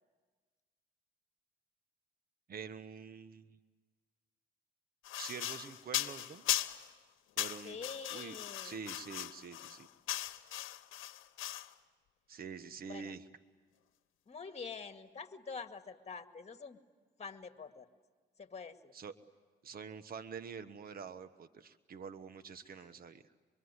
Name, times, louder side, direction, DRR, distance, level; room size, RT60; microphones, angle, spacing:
voice 1, 2.5-3.6 5.1-6.4 7.4-7.8 8.1-8.4 8.6-9.9 10.1-10.3 12.3-13.2 18.9-19.1 19.6-23.2, right 6 dB, 50° right, 10 dB, 1.2 m, -46 dB
sound 1, 5.0-6.9 7.4-11.7, left 13 dB, 85° left, 1.0 m, -39 dB
voice 2, 7.6-8.8 12.8-13.1 14.3-16.8 17.2-17.9 18.4-18.9 22.8-22.9, left 5 dB, 35° left, 7 dB, 2.0 m, -46 dB
26.0 x 22.5 x 9.7 m, 1.4 s
cardioid pair, 90°, 20 cm